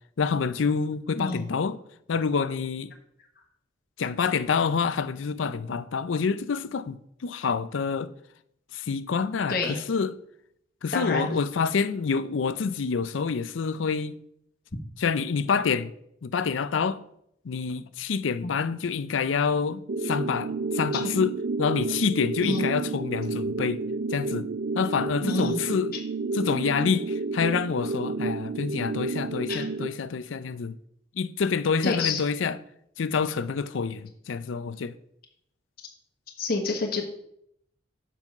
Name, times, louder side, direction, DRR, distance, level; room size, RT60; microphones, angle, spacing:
voice 1, 0.2-1.8 2.1-2.9 4.0-8.1 8.7-10.2 10.8-14.2 15.0-15.9 16.2-17.0 17.4-23.8 24.1-24.5 24.7-26.0 26.3-30.8 31.2-32.6 33.0-35.0, left 5 dB, 90° left, 0.5 m, -27 dB
voice 2, 10.9-11.3 18.4-18.5 20.9-21.1 22.4-22.7 25.2-25.6 25.9-26.0 29.5-29.7 31.8-32.2 36.4-37.0, left 3 dB, 50° left, 1.3 m, -28 dB
sound 1, 19.9-29.9, right 3 dB, 60° right, 0.5 m, -30 dB
7.3 x 5.6 x 5.3 m
head